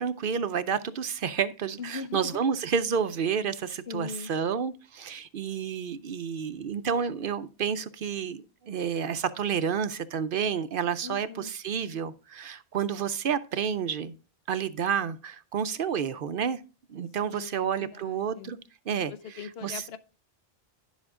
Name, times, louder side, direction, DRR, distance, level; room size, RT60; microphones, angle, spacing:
voice 1, 0.0-14.1 14.5-16.6 16.9-18.6 18.9-19.1 19.6-19.8, right 7 dB, 60° right, 0.7 m, -30 dB
voice 2, 1.8-2.5 3.9-4.3 11.0-11.5 17.2-18.6 19.1-20.0, left 5 dB, 75° left, 1.0 m, -40 dB
11.0 x 7.3 x 3.6 m
omnidirectional pair, 1.1 m